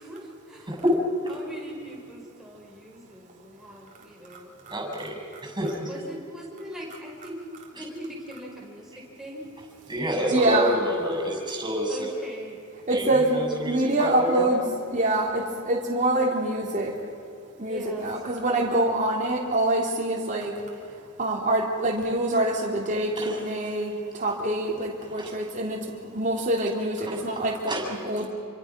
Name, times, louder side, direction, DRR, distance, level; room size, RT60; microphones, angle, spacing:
voice 1, 0.0-0.8 1.3-4.6 5.9-7.4 7.7-9.5 11.9-12.6 17.7-18.7, equal, ahead, -3 dB, 5.6 m, -41 dB
voice 2, 0.7-1.3 4.7-5.9 7.8-7.9 9.9-12.1 12.9-14.5 23.2-23.4 25.0-25.3 27.1-27.4 27.7-27.9 28.2-28.3, equal, 20° right, 1 dB, 7.3 m, -28 dB
voice 3, 10.3-10.7 12.9-13.4 13.7-14.6 14.9-17.1 17.6-20.6 21.2-28.3, right 1 dB, 35° right, -1 dB, 3.5 m, -25 dB
28.0 x 25.0 x 6.2 m, 2.4 s
head